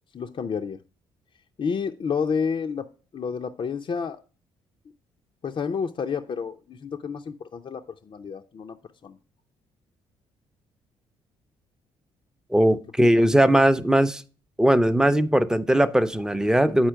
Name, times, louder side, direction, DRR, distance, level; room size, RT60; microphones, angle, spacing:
voice 1, 0.1-0.8 1.6-2.9 3.1-4.2 5.4-8.8 9.0-9.2, left 6 dB, 40° left, 0.5 m, -30 dB
voice 2, 12.5-14.2 14.6-16.9, right 1 dB, 5° right, 0.6 m, -19 dB
8.7 x 4.3 x 4.5 m
supercardioid pair, 60°, 13 cm